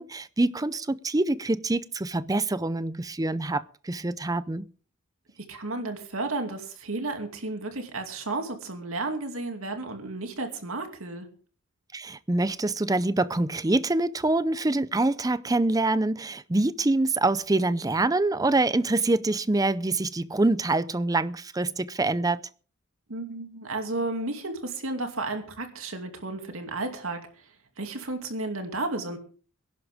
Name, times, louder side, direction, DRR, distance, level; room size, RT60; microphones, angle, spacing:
voice 1, 0.0-4.7 11.9-22.4, right 2 dB, 15° right, 0.5 m, -25 dB
voice 2, 5.4-11.3 23.1-27.4 27.8-29.2, right 2 dB, 70° right, 2.6 m, -33 dB
22.0 x 11.5 x 3.6 m
head